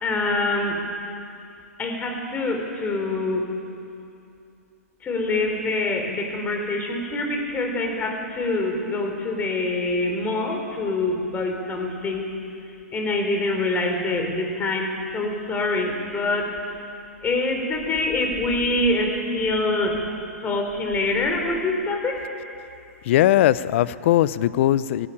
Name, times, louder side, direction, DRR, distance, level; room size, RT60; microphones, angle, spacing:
voice 1, 0.0-0.8 1.8-3.5 5.0-12.3 12.9-16.5 17.2-20.0 20.4-22.2, left 2 dB, 20° left, 3 dB, 3.8 m, -25 dB
voice 2, 23.0-25.1, left 13 dB, 50° left, 18 dB, 0.7 m, -19 dB
17.5 x 17.0 x 9.9 m, 2.6 s
hypercardioid pair, 120°, 8 cm